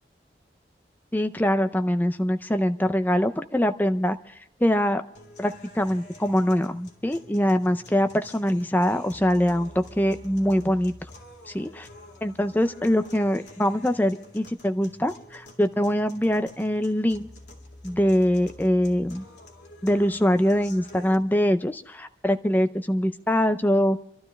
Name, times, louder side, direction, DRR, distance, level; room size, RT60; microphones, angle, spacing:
voice 1, 1.1-4.2 4.6-5.0 5.4-10.9 11.5-11.9 12.2-17.3 17.8-19.2 19.8-24.0, equal, 10° left, 9 dB, 0.5 m, -23 dB
sound 1, 5.2-21.2, left 2 dB, 85° left, 2.3 m, -48 dB
29.0 x 12.5 x 3.2 m, 0.77 s
head